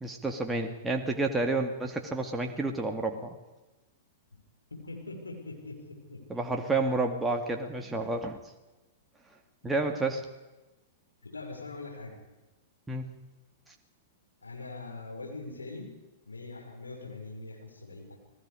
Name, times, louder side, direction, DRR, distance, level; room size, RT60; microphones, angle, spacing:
voice 1, 0.0-3.4 6.3-8.4 9.6-10.2 12.9-13.1, right 2 dB, 10° right, 2 dB, 2.2 m, -30 dB
voice 2, 4.7-6.4 11.2-12.2 14.4-15.9 16.3-18.2, left 3 dB, 85° left, 1 dB, 5.9 m, -42 dB
29.0 x 19.5 x 5.1 m, 1.1 s
figure-of-eight pair, 105°, 0 cm